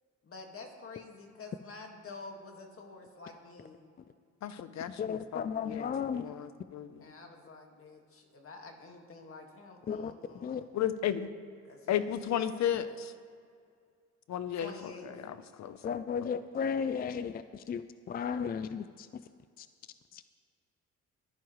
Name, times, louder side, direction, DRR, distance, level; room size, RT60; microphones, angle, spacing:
voice 1, 0.2-3.8 6.2-6.5 7.0-10.7 11.6-12.0 12.3-13.0 14.6-15.2 16.8-16.9, left 3 dB, 45° left, 2 dB, 2.0 m, -49 dB
voice 2, 4.4-7.0 10.7-11.3 11.9-13.1 14.3-14.7 15.0-16.0, left 10 dB, 65° left, 12 dB, 0.8 m, -34 dB
voice 3, 5.0-6.3 9.9-10.1 10.4-10.6 15.8-19.2 19.6-19.7 20.1-20.2, left 6 dB, 30° left, 12 dB, 0.4 m, -34 dB
22.5 x 9.4 x 3.2 m, 2.2 s
cardioid pair, 90°, 30 cm